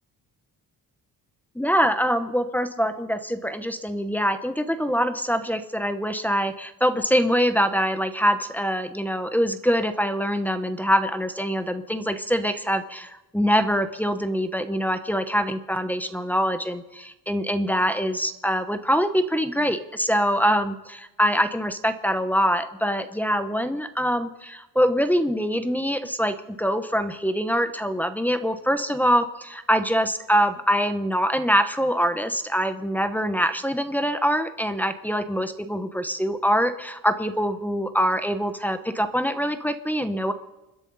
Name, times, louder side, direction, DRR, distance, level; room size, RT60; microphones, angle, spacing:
voice 1, 1.5-40.3, equal, 5° left, 8 dB, 0.9 m, -24 dB
29.5 x 10.5 x 4.1 m, 1.0 s
cardioid pair, 150°, 39 cm